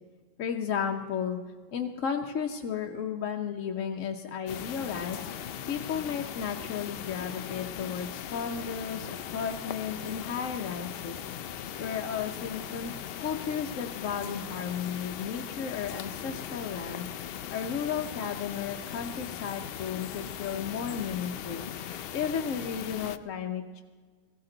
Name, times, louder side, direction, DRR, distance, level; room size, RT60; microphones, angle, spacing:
voice 1, 0.4-1.4 1.7-5.2 5.7-11.2 11.8-12.9 13.2-17.1 17.5-21.7 22.1-23.8, left 7 dB, 65° left, 2 dB, 1.1 m, -34 dB
sound 1, 4.5-23.2, left 10 dB, 80° left, 0.5 m, -39 dB
17.5 x 16.0 x 3.9 m, 1.5 s
omnidirectional pair, 1.6 m